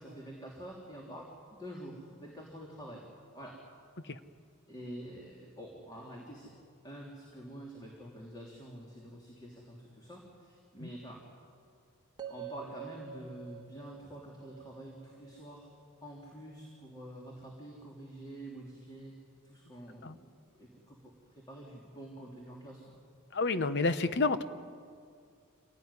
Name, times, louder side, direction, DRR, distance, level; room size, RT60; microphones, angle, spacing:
voice 1, 0.0-3.1 3.3-3.6 4.2-4.3 4.7-6.5 6.8-11.2 12.2-15.7 16.0-19.1 19.4-20.2 20.6-23.0, right 1 dB, 20° left, -2 dB, 3.2 m, -47 dB
sound 1, 12.2-16.3, right 8 dB, 20° right, 1.5 m, -48 dB
voice 2, 23.3-24.4, left 3 dB, 55° left, 11 dB, 1.0 m, -29 dB
26.0 x 18.0 x 9.9 m, 2.2 s
head